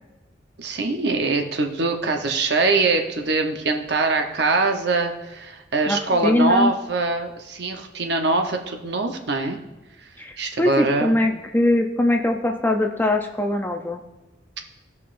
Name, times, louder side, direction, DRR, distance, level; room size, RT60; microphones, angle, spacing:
voice 1, 0.6-9.6 10.4-11.4, right 3 dB, 60° right, 4 dB, 0.8 m, -23 dB
voice 2, 5.9-6.7 10.2-14.0, left 1 dB, 10° left, 3 dB, 0.5 m, -22 dB
16.0 x 5.4 x 2.5 m, 1.1 s
head